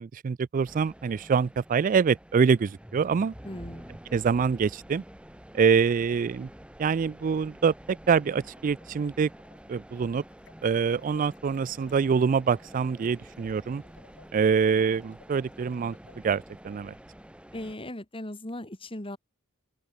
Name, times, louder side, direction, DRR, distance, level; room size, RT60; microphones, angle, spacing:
voice 1, 0.0-3.3 4.1-5.0 5.5-6.5 6.8-9.3 9.7-10.2 10.6-13.8 14.3-16.0 16.2-16.9, right 6 dB, 40° right, 0.3 m, -25 dB
sound 1, 0.6-17.8, equal, 5° right, 1.3 m, -48 dB
voice 2, 3.4-3.9 17.5-19.2, left 1 dB, 25° left, 2.8 m, -38 dB
sound 2, 8.4-16.8, left 3 dB, 55° left, 7.4 m, -61 dB
open air
head